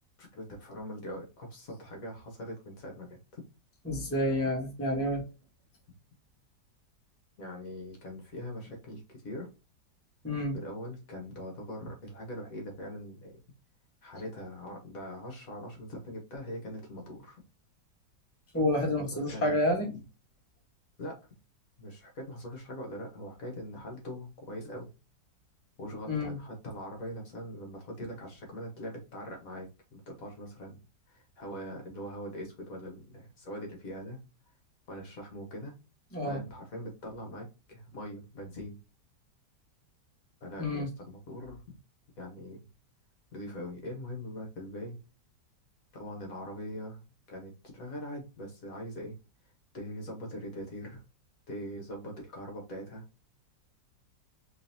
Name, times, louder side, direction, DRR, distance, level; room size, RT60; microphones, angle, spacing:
voice 1, 0.2-3.4 7.4-9.5 10.5-13.3 14.0-17.4 19.0-19.5 19.9-20.0 21.0-21.2 21.8-24.9 25.8-30.8 31.1-34.2 34.9-35.7 36.2-38.8 40.4-41.8 42.2-42.6 43.3-45.0 45.9-47.0 47.3-49.1 49.7-51.0 51.5-53.0, equal, 55° left, 1 dB, 1.5 m, -42 dB
voice 2, 3.8-5.2 10.2-10.6 18.5-19.9 26.1-26.4 36.1-36.4 40.6-40.9, left 1 dB, 10° left, -1 dB, 1.1 m, -29 dB
3.8 x 3.4 x 2.7 m, 0.29 s
omnidirectional pair, 1.9 m